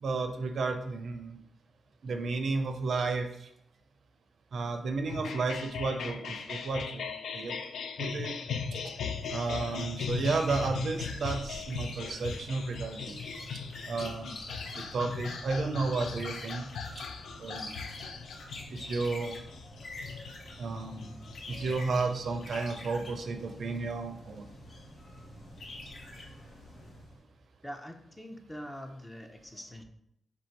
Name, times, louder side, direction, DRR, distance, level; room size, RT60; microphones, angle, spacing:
voice 1, 0.0-1.4 2.0-3.5 4.5-7.5 8.0-8.3 8.7-8.8 9.3-13.2 13.5-14.4 14.7-16.7 16.9-17.0 17.4-17.7 18.7-19.3 20.6-21.1 21.5-24.5, right 3 dB, 70° right, 5 dB, 0.4 m, -32 dB
sound 1, 5.1-22.8, left 6 dB, 85° left, 0.3 m, -39 dB
sound 2, 9.2-27.2, left 2 dB, 70° left, 0.8 m, -46 dB
voice 2, 27.6-29.8, equal, 15° left, 4 dB, 0.6 m, -44 dB
3.3 x 2.6 x 4.4 m, 0.76 s
cardioid pair, 60°, 0 cm